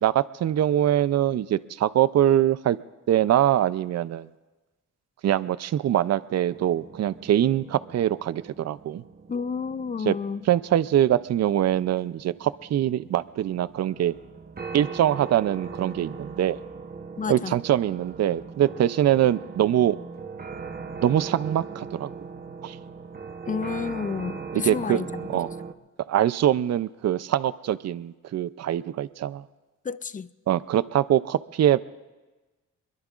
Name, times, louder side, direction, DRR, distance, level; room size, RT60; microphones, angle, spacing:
voice 1, 0.0-2.8 3.1-4.3 5.2-9.0 10.1-10.2 10.5-14.1 14.7-16.6 17.3-20.0 21.0-22.1 22.6-22.8 24.5-25.0 25.3-25.5 26.1-29.4 30.5-31.8, right 11 dB, 55° right, 17 dB, 0.5 m, -23 dB
sound 1, 6.5-25.7, right 5 dB, 30° right, 0.9 m, -40 dB
voice 2, 9.3-10.4 17.2-17.6 23.5-25.3 29.8-30.3, left 5 dB, 25° left, 16 dB, 0.4 m, -30 dB
22.5 x 22.0 x 2.5 m, 1.2 s
cardioid pair, 75°, 31 cm